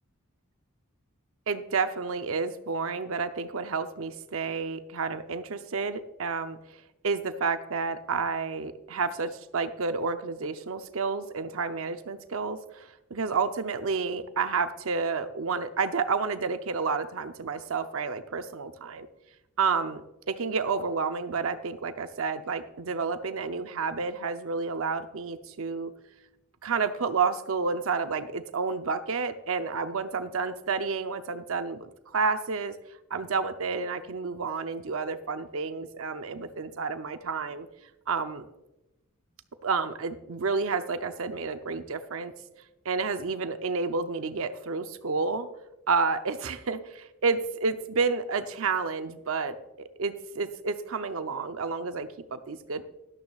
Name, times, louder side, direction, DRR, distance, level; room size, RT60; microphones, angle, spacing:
voice 1, 1.5-6.6 7.0-19.1 19.6-25.9 26.6-32.7 33.1-37.7 38.1-38.5 39.6-42.3 42.8-45.5 45.9-52.8, right 4 dB, 65° right, 9 dB, 0.7 m, -30 dB
13.0 x 11.5 x 2.4 m, 0.95 s
head